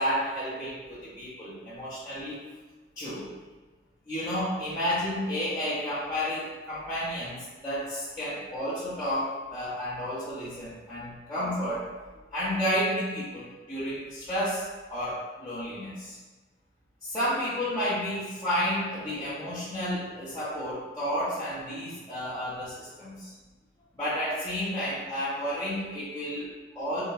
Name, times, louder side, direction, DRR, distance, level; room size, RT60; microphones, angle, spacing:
voice 1, 0.0-2.5 3.0-3.3 4.1-11.9 12.3-14.7 14.9-16.2 17.0-23.3 23.9-27.0, equal, 15° left, -13 dB, 0.6 m, -31 dB
3.7 x 2.1 x 2.3 m, 1.3 s
head